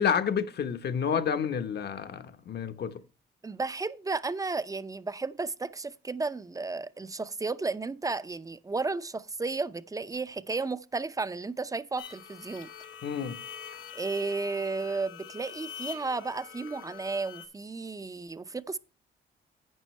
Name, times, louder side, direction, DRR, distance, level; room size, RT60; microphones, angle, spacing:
voice 1, 0.0-3.0 13.0-13.4, left 7 dB, 55° left, 1.1 m, -29 dB
voice 2, 3.4-12.7 13.9-18.8, right 3 dB, 15° right, 0.6 m, -33 dB
sound 1, 12.0-17.5, left 8 dB, 90° left, 2.4 m, -44 dB
11.0 x 8.9 x 3.2 m
cardioid pair, 90°, 20 cm